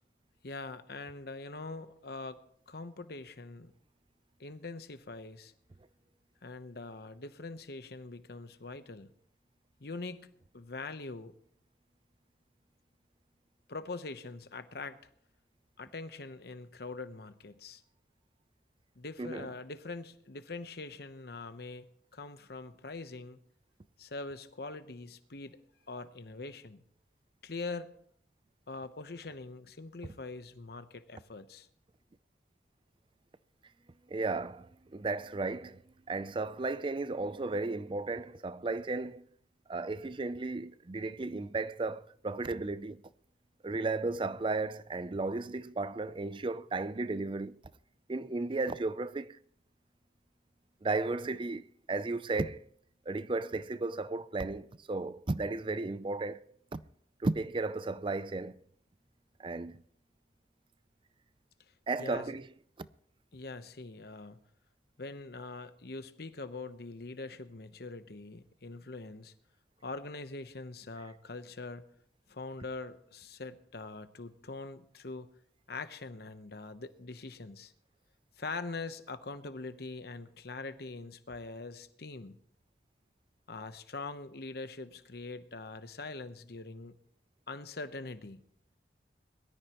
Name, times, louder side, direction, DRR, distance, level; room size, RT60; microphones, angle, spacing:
voice 1, 0.4-2.4 2.7-3.7 4.4-5.5 6.4-9.1 9.8-10.3 10.5-11.3 13.7-15.0 15.8-17.8 19.0-21.9 22.1-23.4 24.0-25.6 25.9-26.8 27.4-27.9 28.7-31.7 62.0-62.2 63.3-64.4 65.0-69.3 69.8-71.8 72.3-75.3 75.7-77.7 78.4-82.4 83.5-86.9 87.5-88.4, left 3 dB, 60° left, 0.9 m, -43 dB
voice 2, 19.2-19.5 34.1-35.8 36.1-39.2 39.7-43.0 43.6-47.6 48.1-49.4 50.8-52.6 53.1-56.5 56.7-56.8 57.2-58.6 59.4-59.8 61.9-62.5 62.8-62.9, right 3 dB, 30° right, 0.5 m, -34 dB
22.0 x 13.5 x 3.0 m
head